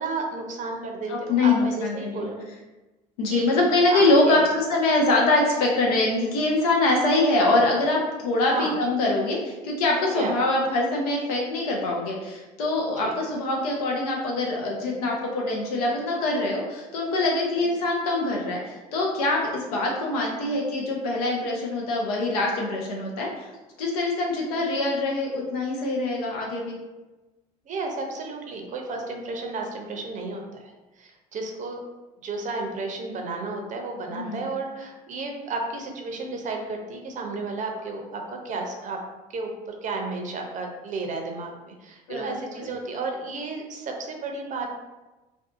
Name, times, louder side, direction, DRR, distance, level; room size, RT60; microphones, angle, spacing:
voice 1, 0.0-2.4 3.3-3.5 3.9-4.5 7.4-7.6 8.5-8.7 10.1-10.4 13.0-13.2 17.6-17.7 27.7-30.7 31.0-31.8 32.2-39.0 39.3-39.5 39.8-44.8, right 3 dB, 40° right, 2 dB, 0.5 m, -32 dB
voice 2, 1.1-2.3 3.2-23.5 23.8-26.8 34.1-34.5 42.1-42.7, left 2 dB, 85° left, -1 dB, 0.6 m, -24 dB
2.6 x 2.3 x 2.4 m, 1.1 s
supercardioid pair, 80°, 19 cm